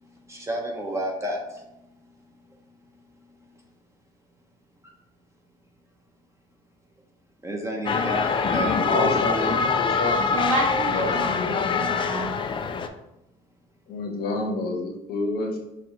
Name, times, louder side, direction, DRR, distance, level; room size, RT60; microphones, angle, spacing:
voice 1, 0.3-1.6 7.4-9.6, right 1 dB, 15° right, 0 dB, 0.8 m, -31 dB
sound 1, 7.9-12.9, left 5 dB, 30° left, 0.3 m, -24 dB
voice 2, 8.8-10.3 10.9-11.8 13.9-15.6, left 3 dB, 65° left, 1 dB, 1.0 m, -28 dB
voice 3, 10.2-12.3, right 1 dB, 40° right, -2 dB, 1.4 m, -29 dB
6.1 x 2.4 x 2.9 m, 0.88 s
cardioid pair, 110°, 17 cm